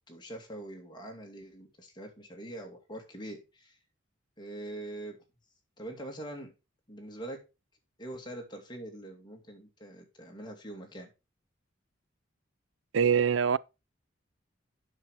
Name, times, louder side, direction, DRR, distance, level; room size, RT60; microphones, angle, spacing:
voice 1, 0.1-3.8 4.4-5.2 5.8-6.5 6.9-7.4 8.0-11.1, right 1 dB, 25° left, 2.3 m, -43 dB
voice 2, 12.9-13.6, right 7 dB, 75° right, 0.4 m, -24 dB
8.8 x 6.0 x 4.7 m
head